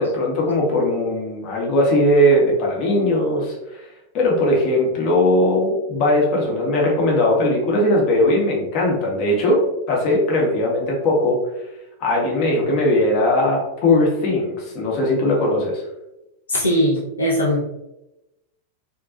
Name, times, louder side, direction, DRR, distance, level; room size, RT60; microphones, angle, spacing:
voice 1, 0.0-3.8 4.1-11.4 12.0-15.8, left 1 dB, 40° left, -2 dB, 0.7 m, -19 dB
voice 2, 16.5-17.6, equal, 75° left, -4 dB, 0.5 m, -19 dB
2.4 x 2.2 x 2.3 m, 0.91 s
figure-of-eight pair, 90°, 0 cm